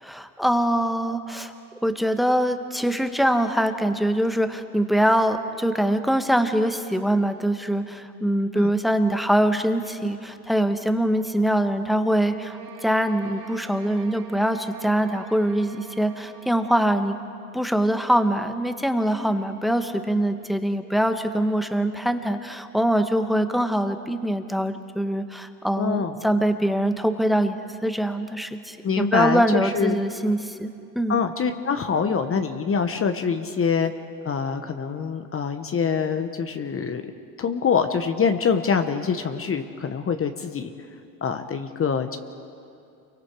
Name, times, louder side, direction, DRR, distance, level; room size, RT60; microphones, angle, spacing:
voice 1, 0.0-1.5 1.8-17.2 17.5-31.2, right 1 dB, ahead, 8 dB, 1.4 m, -23 dB
sound 1, 12.0-16.9, right 8 dB, 80° right, 1.9 m, -46 dB
voice 2, 25.8-26.1 28.8-30.0 31.1-33.9 34.2-37.0 37.4-40.7 41.2-42.2, left 6 dB, 30° left, 7 dB, 1.2 m, -25 dB
28.5 x 23.5 x 4.9 m, 2.5 s
hypercardioid pair, 80°, 46 cm